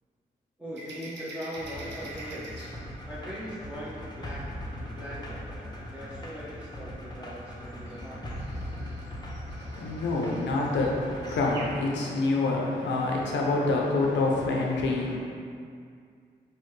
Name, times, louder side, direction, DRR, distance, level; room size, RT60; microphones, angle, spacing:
voice 1, 0.6-2.7 3.0-4.4 4.8-8.4, equal, 5° right, -10 dB, 0.8 m, -40 dB
sound 1, 0.8-2.7 7.7-11.7, right 2 dB, 75° right, 0.6 m, -45 dB
sound 2, 1.5-11.7, equal, 25° left, 0.8 m, -40 dB
voice 2, 9.5-15.2, left 2 dB, 85° left, -2 dB, 0.5 m, -27 dB
4.2 x 2.2 x 3.1 m, 2.2 s
supercardioid pair, 40°, 18 cm